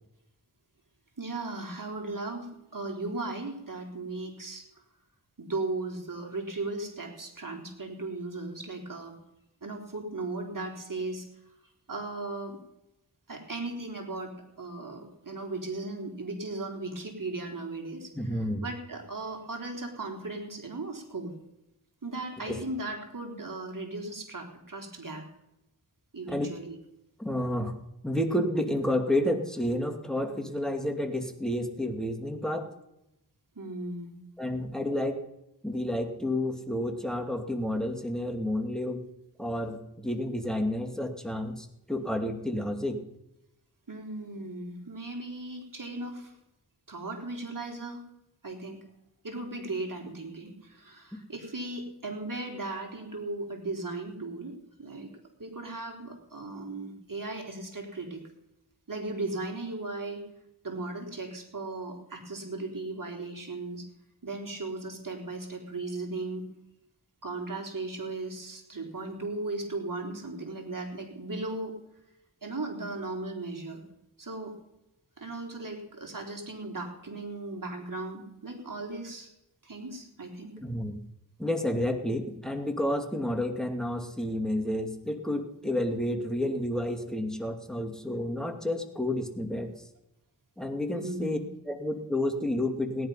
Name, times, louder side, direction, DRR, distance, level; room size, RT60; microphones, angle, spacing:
voice 1, 1.2-4.6 5.4-9.2 9.6-11.3 11.9-12.6 13.3-21.3 22.0-25.2 26.1-26.7 33.6-34.2 43.9-46.3 46.9-48.0 48.4-48.8 49.2-55.1 55.4-58.2 58.9-60.2 60.6-63.9 64.2-66.5 67.2-71.8 72.4-73.8 74.2-74.6 75.2-79.3 79.6-80.6 90.9-91.4, right 2 dB, 50° right, 2 dB, 3.7 m, -37 dB
voice 2, 18.1-18.6 22.5-22.6 26.3-26.5 27.2-27.7 28.0-32.7 34.4-35.2 35.6-39.0 39.4-43.0 80.6-81.0 81.4-89.7 90.6-91.4 91.7-93.1, left 1 dB, ahead, 4 dB, 2.5 m, -30 dB
17.5 x 11.0 x 5.7 m, 0.86 s
cardioid pair, 45°, 41 cm